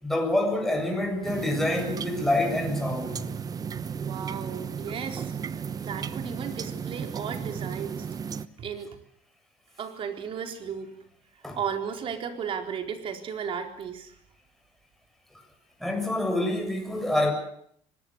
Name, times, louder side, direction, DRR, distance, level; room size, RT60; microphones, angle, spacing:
voice 1, 0.0-3.3 11.4-11.6 15.8-17.3, left 1 dB, ahead, 7.2 m, -27 dB
sound 1, 1.2-8.5, right 7 dB, 30° right, 1.0 m, -34 dB
voice 2, 4.0-8.1 8.6-8.9 9.8-11.0 11.5-14.1, right 7 dB, 45° right, 4.3 m, -35 dB
24.5 x 20.0 x 8.2 m
cardioid pair, 125°, 12 cm